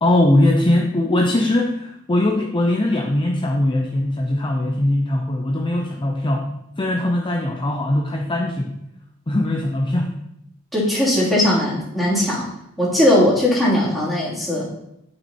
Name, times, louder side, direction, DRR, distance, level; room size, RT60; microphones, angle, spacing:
voice 1, 0.0-8.8 9.3-10.1, left 1 dB, 25° left, 1 dB, 0.7 m, -20 dB
voice 2, 10.7-12.5 12.8-14.7, left 1 dB, ahead, -8 dB, 3.1 m, -19 dB
8.9 x 6.2 x 4.3 m, 0.80 s
head